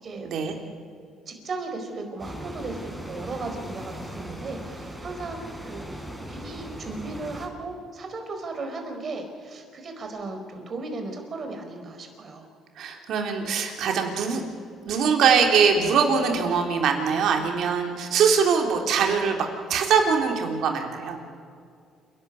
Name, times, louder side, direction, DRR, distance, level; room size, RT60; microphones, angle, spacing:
voice 1, 0.2-0.5 12.8-14.4 14.9-21.2, right 6 dB, 70° right, 3 dB, 3.6 m, -22 dB
voice 2, 1.3-5.4 5.6-12.5, right 3 dB, 45° right, 5 dB, 4.7 m, -36 dB
sound 1, 2.2-7.5, equal, 5° right, 4.7 m, -38 dB
28.0 x 12.0 x 8.3 m, 2.3 s
cardioid pair, 85°, 0 cm